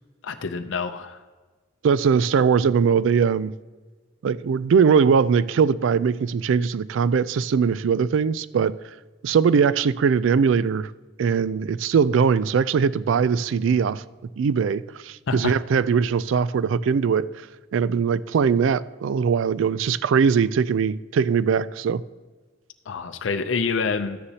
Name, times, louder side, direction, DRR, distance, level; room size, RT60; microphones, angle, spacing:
voice 1, 0.2-1.2 15.3-15.5 22.9-24.2, left 5 dB, 75° left, 0.5 m, -27 dB
voice 2, 1.8-3.5 4.2-8.8 9.2-10.9 11.2-14.0 14.4-17.5 17.7-22.0, right 6 dB, 80° right, 0.3 m, -21 dB
12.5 x 9.7 x 2.8 m
head